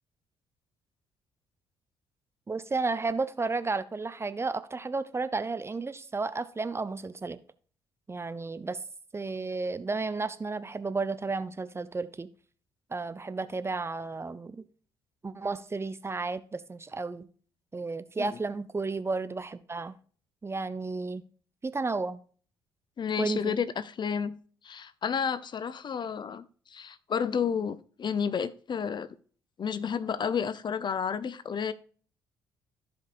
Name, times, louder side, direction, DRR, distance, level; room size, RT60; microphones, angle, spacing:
voice 1, 2.5-7.4 8.1-8.8 9.1-12.3 12.9-14.7 15.2-17.3 17.7-19.9 20.4-21.2 21.6-22.2 23.2-23.6, right 3 dB, 20° right, 0.6 m, -32 dB
voice 2, 23.0-24.3 24.6-29.1 29.6-31.7, left 7 dB, 40° left, 0.6 m, -31 dB
15.0 x 5.2 x 2.5 m
figure-of-eight pair, 45°, 12 cm